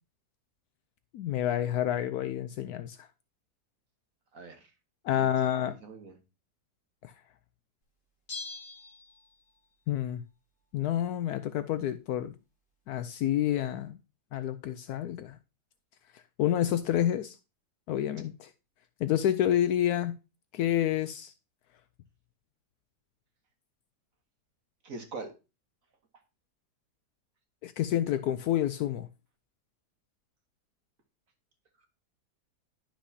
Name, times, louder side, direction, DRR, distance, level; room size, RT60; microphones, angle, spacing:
voice 1, 1.1-3.0 5.0-5.7 7.0-7.1 9.9-10.2 10.7-12.3 12.9-14.0 14.3-15.4 16.1-17.4 17.9-18.5 19.0-20.2 20.5-21.3 27.6-29.1, left 11 dB, 75° left, 1.0 m, -29 dB
voice 2, 4.3-4.7 5.1-6.2 24.8-25.3, right 3 dB, 55° right, 1.6 m, -43 dB
Bell, 8.3-9.7 10.0-10.1, left 3 dB, 50° left, 2.3 m, -43 dB
11.0 x 6.0 x 2.8 m
omnidirectional pair, 1.7 m